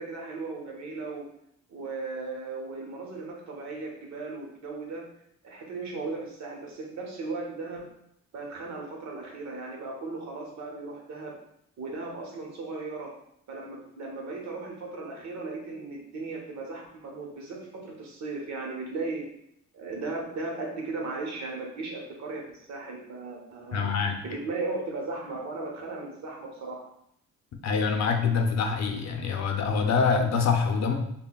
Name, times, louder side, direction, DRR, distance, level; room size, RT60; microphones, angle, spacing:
voice 1, 0.0-1.3 1.7-5.1 5.4-7.9 8.3-11.4 11.8-13.1 13.5-19.3 19.7-23.9 24.2-26.9, right 3 dB, 65° right, 0 dB, 1.1 m, -36 dB
voice 2, 23.7-24.2 27.6-30.9, left 5 dB, 60° left, 4 dB, 0.6 m, -25 dB
5.4 x 2.3 x 2.3 m, 0.74 s
cardioid pair, 90°, 30 cm